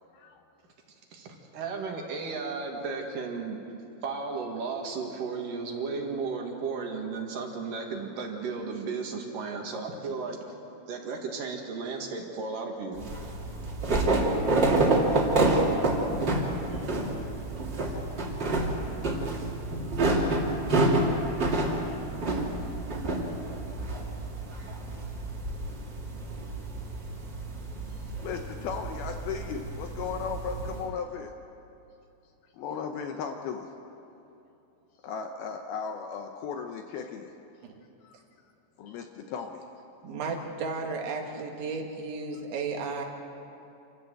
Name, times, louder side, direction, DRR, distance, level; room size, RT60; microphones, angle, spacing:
voice 1, 0.1-0.4 27.9-31.3 32.5-33.7 35.0-37.4 38.0-38.2 38.8-39.6, left 6 dB, 75° left, 5 dB, 2.4 m, -36 dB
voice 2, 1.1-3.6 4.0-10.4 10.9-13.1, right 4 dB, 55° right, 2 dB, 3.0 m, -34 dB
sound 1, 13.0-30.8, right 2 dB, 30° right, 2.5 m, -28 dB
voice 3, 40.0-43.0, right 4 dB, 85° right, 1 dB, 4.4 m, -34 dB
28.0 x 14.0 x 7.8 m, 2.8 s
omnidirectional pair, 5.2 m